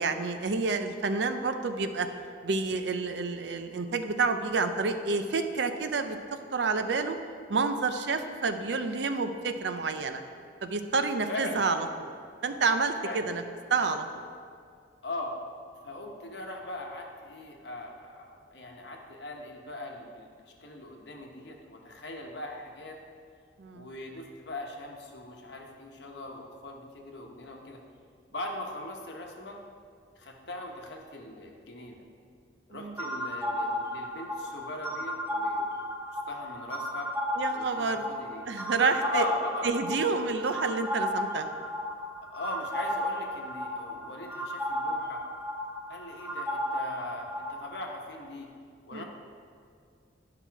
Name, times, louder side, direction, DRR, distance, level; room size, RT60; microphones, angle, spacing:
voice 1, 0.0-2.1 2.4-7.2 7.5-10.2 10.6-12.1 12.4-13.4 13.7-14.2 23.6-23.9 32.7-32.9 37.3-38.0 38.5-39.2 39.6-41.5 48.9-49.0, right 4 dB, 70° right, 8 dB, 0.5 m, -29 dB
voice 2, 11.3-11.7 13.0-13.3 15.0-15.3 15.8-23.0 23.7-27.8 28.3-29.6 30.2-32.0 32.7-35.8 36.3-37.1 37.5-38.5 39.0-39.7 42.3-45.2 45.9-48.5 48.9-49.0, left 2 dB, 65° left, 1 dB, 1.1 m, -40 dB
sound 1, 33.0-47.7, left 1 dB, 10° right, 0.6 m, -34 dB
10.0 x 5.8 x 4.6 m, 2.2 s
head